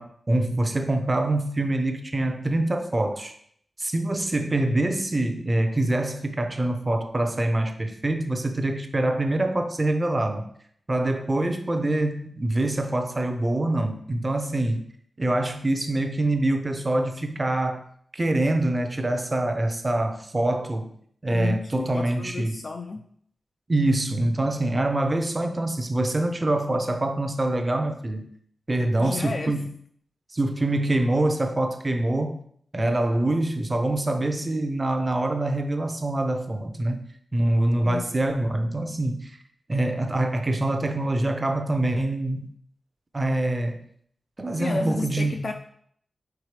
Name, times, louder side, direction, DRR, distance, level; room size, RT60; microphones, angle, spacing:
voice 1, 0.0-3.3 3.8-10.5 10.9-14.8 15.2-17.8 18.1-20.9 21.2-22.6 23.7-28.3 28.7-29.6 30.3-32.4 32.7-39.4 39.7-42.5 43.1-43.8 44.4-45.4, right 1 dB, 20° right, 6 dB, 0.7 m, -25 dB
voice 2, 21.3-23.0 29.0-29.5 37.8-38.1 44.6-45.5, left 3 dB, 50° left, 4 dB, 0.4 m, -32 dB
4.9 x 4.7 x 5.0 m, 0.64 s
wide cardioid pair, 150°, 0 cm